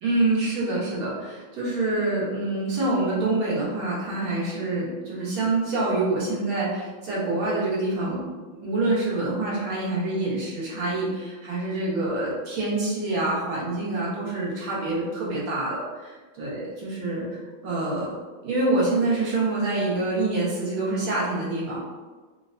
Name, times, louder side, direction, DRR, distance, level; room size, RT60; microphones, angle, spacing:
voice 1, 0.0-8.2 8.6-18.1 18.4-21.8, right 2 dB, 85° right, -6 dB, 1.8 m, -26 dB
4.4 x 2.1 x 2.6 m, 1.3 s
omnidirectional pair, 2.2 m